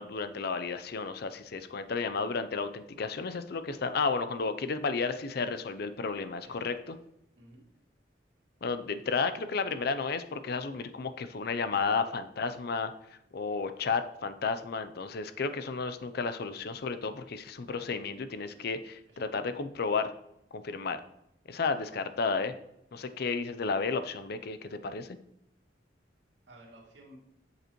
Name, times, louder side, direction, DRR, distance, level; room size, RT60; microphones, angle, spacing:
voice 1, 0.0-7.0 8.6-12.9 13.3-20.1 20.5-21.0 21.5-22.5 22.9-25.2, left 4 dB, 60° left, 10 dB, 0.5 m, -32 dB
voice 2, 6.4-6.8 7.4-7.6 19.1-19.2 21.8-21.9 22.9-23.1 26.5-27.2, right 1 dB, 85° right, -3 dB, 2.3 m, -54 dB
7.9 x 6.6 x 3.0 m, 0.79 s
head